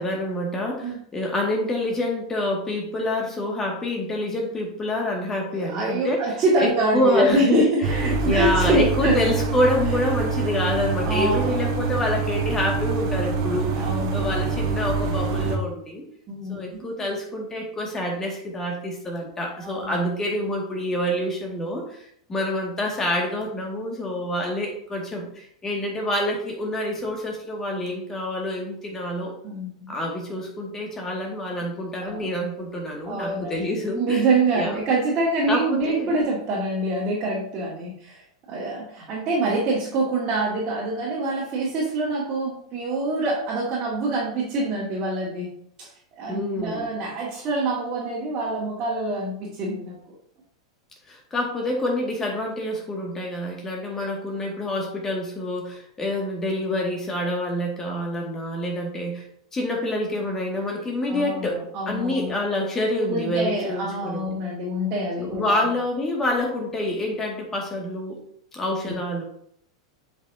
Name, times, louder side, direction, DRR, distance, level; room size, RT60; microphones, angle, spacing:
voice 1, 0.0-6.2 6.6-13.8 14.1-16.1 16.5-22.0 22.3-29.3 29.9-34.2 34.6-34.8 35.5-36.2 46.3-46.9 51.1-59.2 59.5-61.6 61.9-64.3 65.2-68.2 68.5-69.2, left 1 dB, 20° left, 0 dB, 2.1 m, -27 dB
voice 2, 5.5-9.3 9.9-10.0 10.4-10.6 11.0-11.6 13.7-14.3 16.3-16.7 19.6-20.0 29.4-29.9 32.0-32.3 33.0-33.6 33.9-38.2 38.5-45.5 45.8-45.9 46.2-50.2 61.1-62.4 63.0-65.7 68.8-69.0, right 2 dB, 35° right, -7 dB, 2.2 m, -25 dB
Foley Street Ventilation Hum, 7.8-15.6, right 4 dB, 50° right, 1.1 m, -25 dB
7.5 x 5.5 x 2.8 m, 0.67 s
figure-of-eight pair, 90°, 2 cm